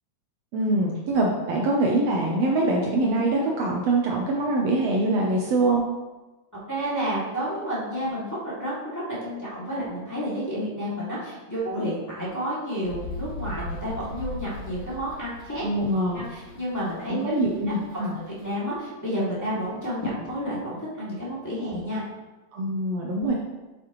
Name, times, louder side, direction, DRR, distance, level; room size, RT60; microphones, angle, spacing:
voice 1, 0.5-5.8 15.6-16.2 17.1-18.2 22.5-23.3, right 2 dB, 70° right, -1 dB, 1.8 m, -24 dB
voice 2, 6.7-15.7 16.1-17.4 17.9-18.0 18.4-22.0, equal, 5° left, -8 dB, 2.1 m, -30 dB
sound 1, 12.8-18.4, left 2 dB, 50° left, 2.3 m, -38 dB
8.1 x 7.5 x 3.1 m, 1.1 s
omnidirectional pair, 3.3 m